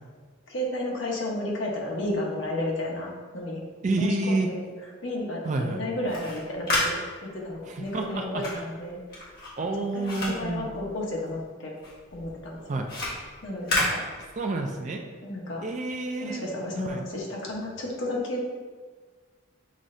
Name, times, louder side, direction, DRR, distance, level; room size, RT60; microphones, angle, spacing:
voice 1, 0.5-3.1 3.3-3.6 4.0-4.6 5.0-7.0 7.3-9.0 9.6-11.8 12.1-12.8 13.4-14.0 15.2-15.6 16.2-18.4, left 1 dB, 70° left, -3 dB, 1.1 m, -32 dB
voice 2, 3.8-4.5 5.4-5.8 7.7-8.6 9.6-10.7 12.7-12.9 13.8-13.9 14.4-15.0 15.6-16.5 16.8-17.0, right 2 dB, 35° right, 3 dB, 0.3 m, -29 dB
sound 1, 5.9-11.5 11.8-14.7, left 1 dB, 50° left, 1.3 m, -32 dB
6.2 x 3.1 x 2.6 m, 1.5 s
head